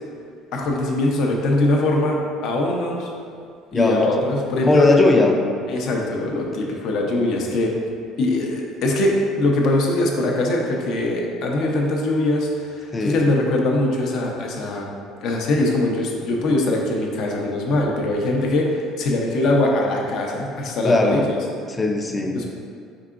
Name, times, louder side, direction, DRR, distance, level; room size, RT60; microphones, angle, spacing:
voice 1, 0.5-3.1 3.7-4.9 5.7-7.7 8.2-14.9 15.2-21.4 22.3-22.5, left 2 dB, 60° left, 0 dB, 0.6 m, -22 dB
voice 2, 3.7-4.0 4.6-5.4 12.9-13.3 20.8-21.2 21.8-22.4, left 2 dB, 15° left, 3 dB, 0.3 m, -18 dB
4.6 x 3.7 x 2.4 m, 2.3 s
cardioid pair, 135°, 0 cm